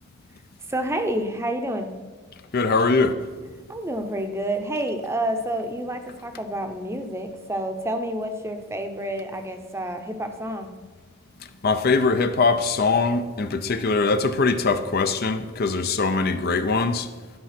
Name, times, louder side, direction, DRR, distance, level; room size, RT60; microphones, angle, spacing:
voice 1, 0.7-1.9 3.7-10.7, right 1 dB, 15° right, 0.7 m, -29 dB
voice 2, 2.5-3.3 11.6-17.1, left 4 dB, 45° left, 0.5 m, -22 dB
12.0 x 5.3 x 5.9 m
head